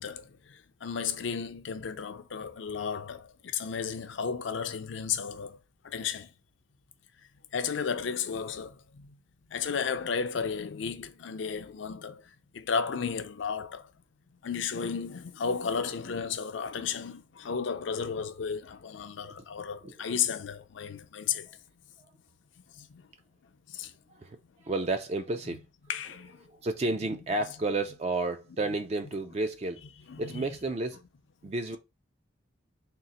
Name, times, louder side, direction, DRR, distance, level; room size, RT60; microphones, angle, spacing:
voice 1, 0.0-5.6 5.8-6.3 7.5-9.2 9.5-13.9 14.4-21.5 22.7-23.1 23.7-23.9 25.5-25.6 25.9-26.5 27.4-27.5 30.1-30.5 31.4-31.8, left 6 dB, 75° left, 0.5 m, -34 dB
voice 2, 24.6-25.6 26.5-29.9 30.2-31.0 31.4-31.8, right 2 dB, 35° right, 0.3 m, -31 dB
3.7 x 2.4 x 4.0 m
head